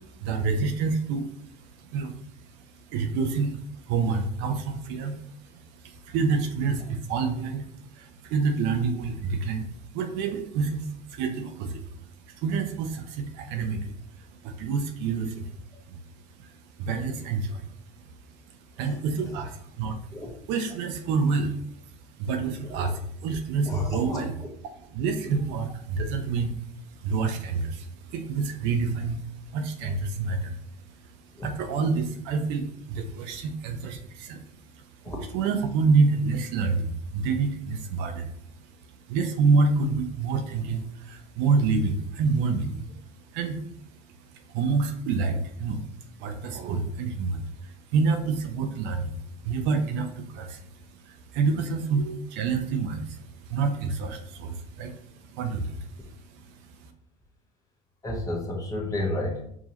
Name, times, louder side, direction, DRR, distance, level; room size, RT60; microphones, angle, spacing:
voice 1, 0.0-24.3 24.9-56.9, right 4 dB, 65° right, 6 dB, 0.6 m, -28 dB
voice 2, 23.6-24.2 25.3-25.4 31.4-31.5 35.0-35.2 58.0-59.4, left 1 dB, 15° left, -2 dB, 1.2 m, -32 dB
4.8 x 2.8 x 2.8 m, 0.69 s
supercardioid pair, 100°, 20 cm